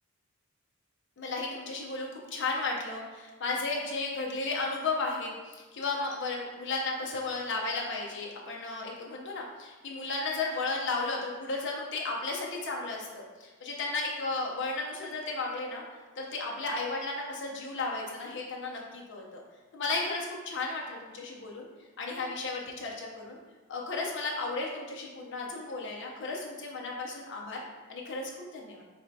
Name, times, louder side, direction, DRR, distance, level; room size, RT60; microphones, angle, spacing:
voice 1, 1.2-15.8 16.2-19.4 19.7-21.7 22.0-23.4 23.7-27.6 27.9-28.8, left 3 dB, 55° left, -1 dB, 0.5 m, -34 dB
3.2 x 2.7 x 4.5 m, 1.3 s
head